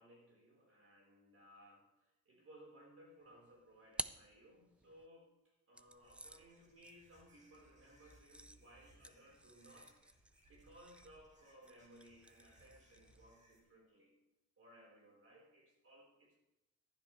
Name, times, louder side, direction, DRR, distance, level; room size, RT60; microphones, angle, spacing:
voice 1, 0.0-9.9 10.5-14.1 14.6-16.4, equal, 45° right, -2 dB, 4.8 m, -62 dB
sound 1, 3.3-5.1 5.7-13.3, right 1 dB, 5° right, 0.4 m, -52 dB
sound 2, 5.9-13.6, right 1 dB, 20° right, 2.7 m, -68 dB
15.0 x 12.0 x 3.4 m, 0.98 s
cardioid pair, 105°, 33 cm